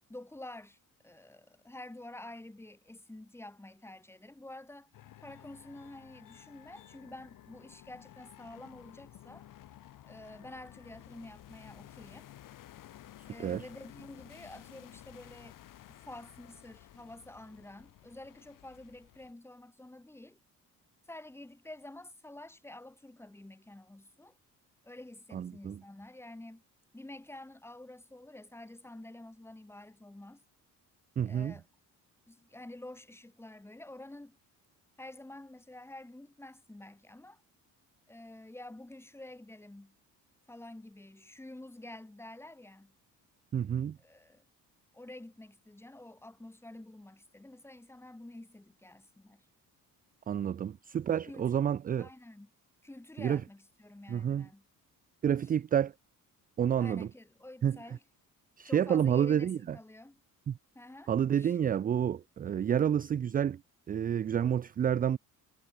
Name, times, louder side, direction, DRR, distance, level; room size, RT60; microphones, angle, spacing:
voice 1, 0.1-0.8 1.0-4.9 5.2-9.5 10.0-12.3 13.2-15.6 15.9-20.4 21.1-24.3 24.8-26.6 26.9-30.4 31.2-31.6 32.3-34.4 35.0-37.4 38.1-40.0 40.5-42.9 44.0-44.4 44.9-49.4 51.2-51.7 52.0-52.5 52.8-54.6 55.4-55.5 56.8-58.0 58.6-60.2 60.7-61.5, left 1 dB, 5° left, 4.9 m, -49 dB
sound 1, 4.9-19.3, left 13 dB, 65° left, 7.2 m, -54 dB
voice 2, 25.3-25.8 31.2-31.5 43.5-44.0 50.3-52.1 53.2-53.4 54.1-54.5 55.2-55.9 56.6-57.1 57.6-57.8 58.6-59.8 60.5-60.6 61.1-63.6 63.9-65.2, right 9 dB, 25° right, 0.4 m, -29 dB
cardioid pair, 150°, 34 cm